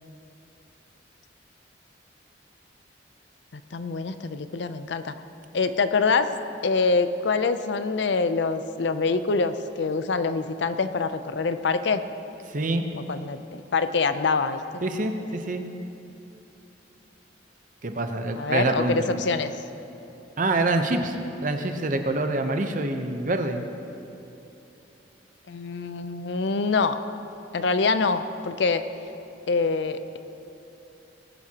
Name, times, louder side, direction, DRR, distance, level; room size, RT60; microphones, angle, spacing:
voice 1, 3.5-5.1 5.5-6.3 6.6-12.0 12.9-14.6 18.4-19.5 25.5-27.0 27.5-28.8 29.5-30.2, left 4 dB, 65° left, 10 dB, 0.5 m, -25 dB
voice 2, 12.5-12.8 14.8-15.6 17.8-19.0 20.4-21.2 21.4-23.6, right 2 dB, 45° right, 6 dB, 0.8 m, -26 dB
19.0 x 10.5 x 2.9 m, 2.9 s
head